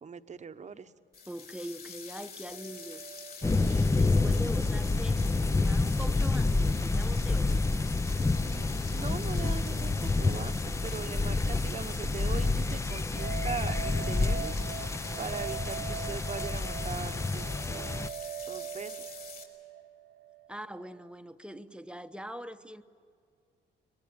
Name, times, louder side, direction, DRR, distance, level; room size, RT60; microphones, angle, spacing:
voice 1, 0.0-0.9 3.6-4.2 8.3-10.6 10.8-14.5 15.2-18.0 18.5-19.1, right 6 dB, 35° right, 1.0 m, -41 dB
sound 1, 1.1-19.4, left 5 dB, 50° left, 4.9 m, -46 dB
voice 2, 1.3-3.0 3.6-7.7 20.5-22.8, right 1 dB, 5° right, 0.9 m, -43 dB
sound 2, 2.4-5.6 5.9-6.0 13.2-21.1, right 9 dB, 70° right, 1.2 m, -43 dB
sound 3, 3.4-18.1, left 3 dB, 15° left, 0.6 m, -28 dB
23.0 x 22.0 x 8.8 m
cardioid pair, 90°, 20 cm